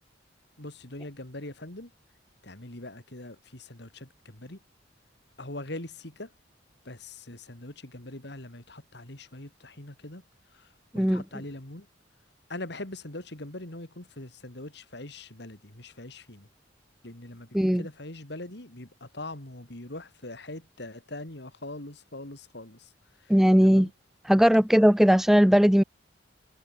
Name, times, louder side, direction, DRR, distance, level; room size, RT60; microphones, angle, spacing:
voice 1, 0.6-1.9 2.4-4.6 5.4-6.3 6.8-10.2 10.9-11.9 12.5-16.5 17.0-22.8 23.6-23.9, left 2 dB, 60° left, 3.3 m, -42 dB
voice 2, 23.3-23.9 24.2-25.8, equal, ahead, 0.3 m, -19 dB
head